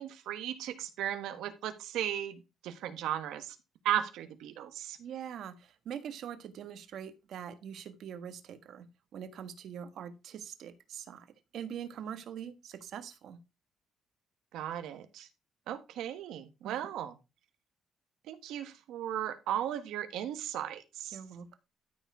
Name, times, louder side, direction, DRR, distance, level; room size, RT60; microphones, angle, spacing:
voice 1, 0.0-3.6 3.8-5.0 14.5-15.3 15.7-17.1 18.3-21.2, right 11 dB, 90° right, 1.3 m, -36 dB
voice 2, 5.0-11.3 11.5-13.4 16.6-16.9 21.1-21.5, right 8 dB, 70° right, 1.4 m, -43 dB
13.0 x 4.5 x 4.8 m
cardioid pair, 90°, 0 cm